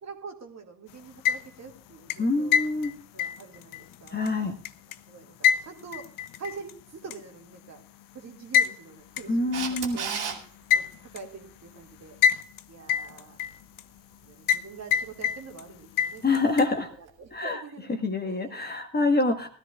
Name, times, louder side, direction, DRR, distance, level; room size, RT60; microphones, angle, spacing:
voice 1, 0.0-2.6 3.1-4.5 5.1-6.0 6.4-7.8 8.1-10.4 10.7-12.1 12.7-13.4 14.2-16.6 17.0-17.9 18.2-18.7, right 5 dB, 40° right, 2 dB, 2.3 m, -45 dB
sound 1, 1.0-1.7 2.1-5.0 5.4-6.7 7.1-7.2 8.5-8.7 9.2-9.3 9.8-9.9 10.7-11.2 12.2-12.6 12.9-13.8 14.5-14.7 14.9-15.6 16.0-16.7, left 8 dB, 50° left, 0.7 m, -25 dB
voice 2, 2.2-2.9 4.1-4.5 9.3-10.0 16.2-16.9 17.3-17.6 18.0-19.5, left 3 dB, 20° left, 4 dB, 1.6 m, -25 dB
Camera, 9.5-10.4 17.1-17.2, right 6 dB, 60° right, 2.4 m, -31 dB
19.0 x 13.0 x 2.4 m, 0.42 s
figure-of-eight pair, 50°, 43 cm